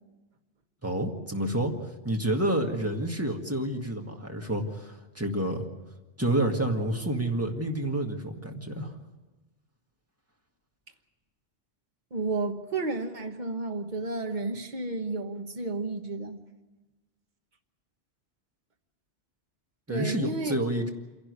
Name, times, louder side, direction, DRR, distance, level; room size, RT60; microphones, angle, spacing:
voice 1, 0.8-1.7 2.0-5.7 6.2-8.9 19.9-20.9, right 1 dB, 15° right, 2 dB, 1.9 m, -29 dB
voice 2, 12.1-16.4 19.9-20.6, right 3 dB, 45° right, 5 dB, 1.4 m, -32 dB
27.0 x 11.5 x 9.6 m, 1.1 s
omnidirectional pair, 1.1 m